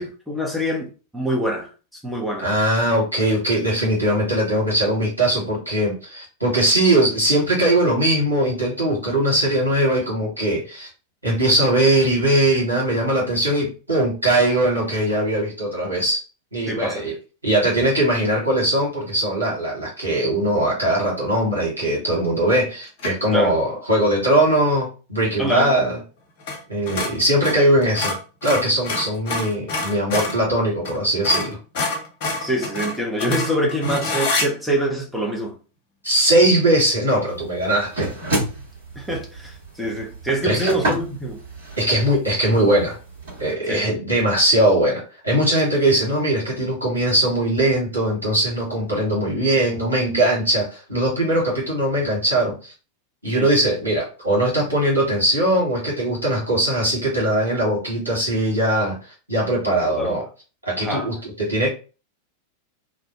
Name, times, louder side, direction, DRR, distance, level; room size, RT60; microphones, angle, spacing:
voice 1, 0.0-1.7 2.0-2.5 16.7-17.0 23.3-23.5 25.4-25.7 32.4-35.6 39.0-41.4 43.7-43.9 53.3-53.5 59.7-60.2 60.8-61.1, equal, ahead, 0.7 m, -25 dB
voice 2, 2.4-10.9 11.2-16.2 16.5-17.1 17.4-26.0 26.7-31.6 36.0-38.1 40.4-40.7 41.8-43.0 43.4-52.7 53.2-60.2 60.6-61.7, right 1 dB, 85° right, 1.4 m, -20 dB
sound 1, 23.0-23.3 26.4-26.6 26.9-30.4 30.8-31.0 31.2-34.5, left 3 dB, 45° left, 0.7 m, -26 dB
sound 2, 37.3-43.5, right 1 dB, 60° right, 1.4 m, -30 dB
2.5 x 2.1 x 2.8 m
figure-of-eight pair, 90°, 0 cm